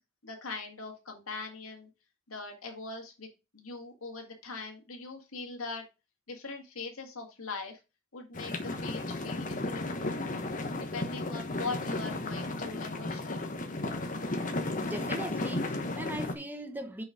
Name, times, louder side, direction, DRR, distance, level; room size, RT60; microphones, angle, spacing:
voice 1, 0.2-1.9 2.3-3.3 3.5-5.8 6.3-7.8 8.1-10.2 10.8-13.5, left 3 dB, 90° left, 2.0 m, -41 dB
sound 1, 8.3-16.3, left 2 dB, 40° left, 1.2 m, -34 dB
voice 2, 14.8-17.0, right 1 dB, 10° right, 0.9 m, -39 dB
6.4 x 5.5 x 5.0 m
head